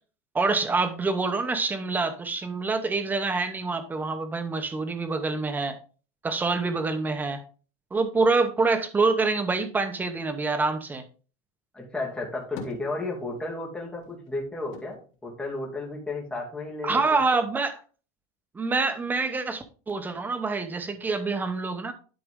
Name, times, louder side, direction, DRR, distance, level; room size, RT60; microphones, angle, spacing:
voice 1, 0.3-5.8 6.2-7.4 7.9-11.0 16.8-17.8 18.5-21.9, right 3 dB, 10° right, 9 dB, 0.9 m, -26 dB
voice 2, 11.7-17.0, left 2 dB, 5° left, -3 dB, 2.5 m, -33 dB
sound 1, 12.1-13.6 13.9-16.3 16.7-17.6, left 7 dB, 60° left, 2.5 m, -46 dB
11.5 x 4.9 x 3.6 m, 0.38 s
supercardioid pair, 160°, 17 cm